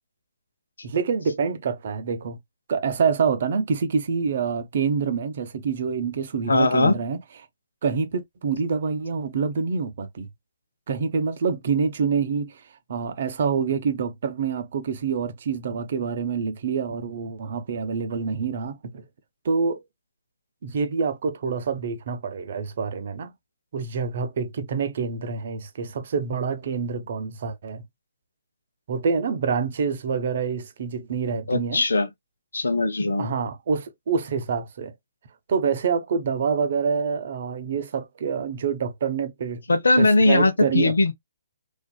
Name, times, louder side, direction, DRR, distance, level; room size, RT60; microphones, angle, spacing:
voice 1, 0.8-2.4 2.7-7.2 7.8-10.3 10.9-12.6 12.9-19.0 19.4-19.8 20.6-23.3 23.7-27.8 28.9-31.8 33.2-34.9 35.5-39.6 40.0-41.0, right 5 dB, 55° right, 0.6 m, -26 dB
voice 2, 6.5-7.0 31.5-32.1 32.5-33.3 39.7-41.1, left 2 dB, 80° left, 0.6 m, -20 dB
2.5 x 2.5 x 2.2 m
hypercardioid pair, 140°, 0 cm